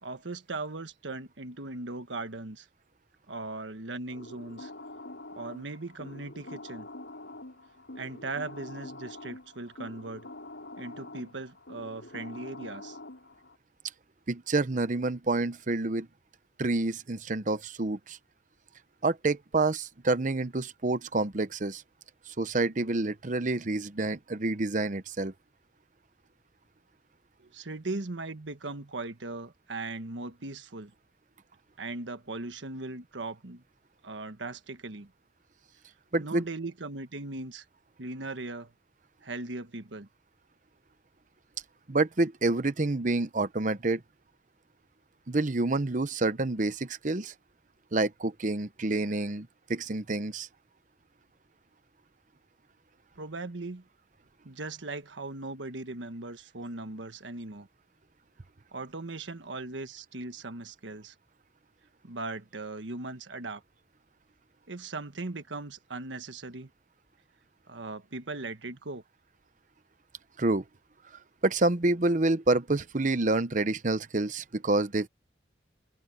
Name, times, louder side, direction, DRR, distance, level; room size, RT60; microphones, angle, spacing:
voice 1, 0.0-2.7 3.3-4.7 5.4-6.9 8.0-10.3 10.8-13.0 27.4-30.9 31.8-33.6 34.0-35.1 36.2-37.6 38.0-38.7 39.2-40.1 53.2-53.8 54.4-57.7 58.7-61.1 62.0-63.6 64.7-66.7 67.7-69.0, right 2 dB, 90° right, 1.4 m, -38 dB
sound 1, 4.1-13.6, left 2 dB, 85° left, 5.6 m, -45 dB
voice 2, 14.3-16.1 16.6-18.2 19.0-21.8 22.3-25.3 36.1-36.4 41.9-44.0 45.3-47.3 47.9-50.5 70.4-70.6 71.4-75.1, right 2 dB, 45° right, 0.8 m, -28 dB
head